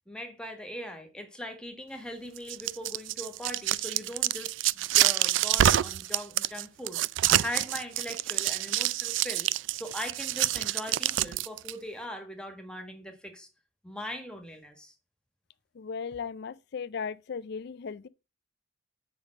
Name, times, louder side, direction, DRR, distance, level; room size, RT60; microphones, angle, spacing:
voice 1, 0.1-7.0 7.3-13.5 13.8-14.9, equal, 5° left, 1.6 m, -40 dB
sound 1, 2.4-11.7, right 13 dB, 80° right, 0.3 m, -27 dB
voice 2, 15.7-18.1, left 6 dB, 60° left, 0.4 m, -36 dB
7.1 x 5.3 x 6.3 m
head